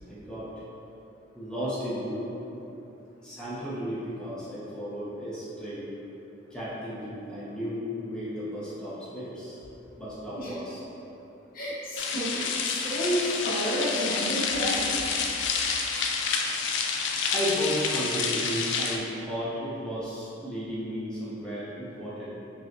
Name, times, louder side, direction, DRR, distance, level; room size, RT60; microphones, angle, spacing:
voice 1, 0.1-0.5 1.3-2.6 3.2-5.9 6.5-9.6 10.0-10.8 17.3-22.3, equal, 5° left, -10 dB, 0.9 m, -34 dB
voice 2, 11.5-15.3, equal, 45° left, -8 dB, 0.9 m, -30 dB
sound 1, 12.0-19.0, left 5 dB, 65° left, 0.4 m, -28 dB
5.6 x 2.4 x 2.7 m, 3.0 s
head